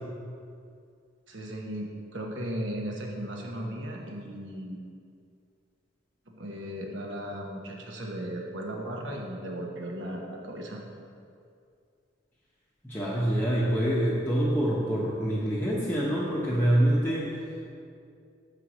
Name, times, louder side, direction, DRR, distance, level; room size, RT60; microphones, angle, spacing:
voice 1, 1.3-4.8 6.3-10.8, right 1 dB, 65° right, 0 dB, 1.1 m, -36 dB
voice 2, 12.8-17.3, right 1 dB, 10° left, -7 dB, 0.8 m, -25 dB
6.9 x 4.6 x 6.1 m, 2.4 s
head